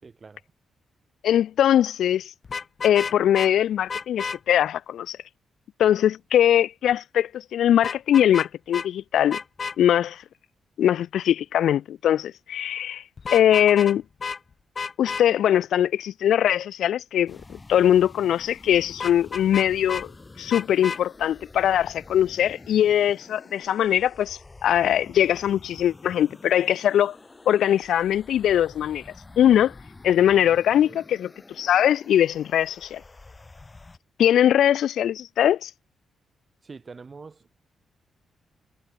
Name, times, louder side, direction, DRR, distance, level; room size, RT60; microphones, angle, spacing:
voice 1, 0.0-0.4 30.8-31.0 36.6-37.5, right 4 dB, 35° right, 4.7 m, -44 dB
voice 2, 1.2-2.3 2.8-5.2 5.8-9.4 9.8-10.2 10.8-13.0 13.3-14.0 15.0-20.1 20.4-27.2 27.5-29.0 29.4-29.7 30.0-31.3 31.6-33.0 34.2-35.7, left 10 dB, 80° left, 0.7 m, -21 dB
Vehicle horn car horn honking, 2.4-3.5 3.9-4.4 7.8-8.5 8.7-8.9 9.3-9.8 13.2-14.0 14.2-14.4 14.8-15.2 19.0-20.1 20.5-21.0, left 5 dB, 40° left, 0.7 m, -31 dB
sound 1, 17.3-34.0, left 3 dB, 25° left, 6.4 m, -48 dB
cardioid pair, 100°, 0 cm